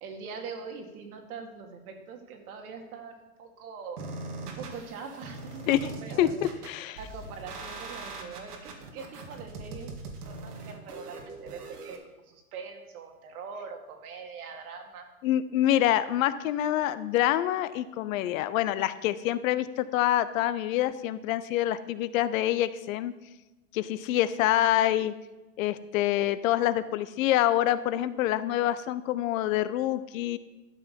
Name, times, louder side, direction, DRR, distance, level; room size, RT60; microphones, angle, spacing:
voice 1, 0.0-4.0 4.4-6.3 7.0-9.9 10.3-15.1, right 5 dB, 70° right, 3 dB, 2.2 m, -42 dB
sound 1, 4.0-12.0, right 3 dB, 85° right, 1.9 m, -41 dB
voice 2, 6.2-7.0 15.2-23.1 23.7-25.1 25.6-30.4, left 13 dB, 60° left, 15 dB, 0.7 m, -26 dB
12.0 x 6.0 x 5.3 m, 1.1 s
hypercardioid pair, 115°, 46 cm